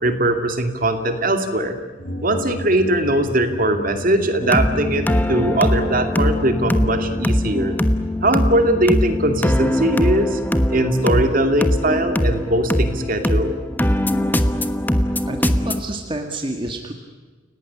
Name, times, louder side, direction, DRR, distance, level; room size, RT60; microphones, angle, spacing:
voice 1, 0.0-1.8 2.2-7.8 8.2-10.4 10.7-13.6, right 1 dB, 45° right, 6 dB, 2.6 m, -20 dB
sound 1, 2.0-5.2, equal, 75° left, 6.3 m, -34 dB
sound 2, 4.4-15.8, equal, 10° left, 1.1 m, -21 dB
voice 2, 15.3-16.9, right 1 dB, 25° right, 3 dB, 2.0 m, -29 dB
30.0 x 18.0 x 10.0 m, 1.4 s
head